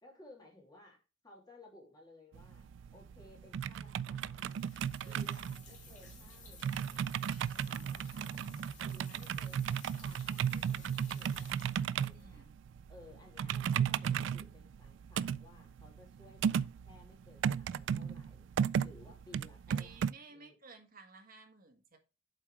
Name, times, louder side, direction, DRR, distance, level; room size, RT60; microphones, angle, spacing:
voice 1, 0.0-4.6 5.1-7.1 7.6-8.5 8.8-9.7 10.0-12.5 12.9-18.5 18.8-20.6, left 2 dB, 20° left, 2.7 m, -59 dB
sound 1, 2.3-20.1, right 8 dB, 75° right, 0.3 m, -35 dB
sound 2, 4.4-12.3, left 5 dB, 40° left, 2.4 m, -57 dB
voice 2, 7.4-8.1 12.1-12.6 19.7-22.0, right 3 dB, 50° right, 1.6 m, -56 dB
7.6 x 4.7 x 4.8 m
head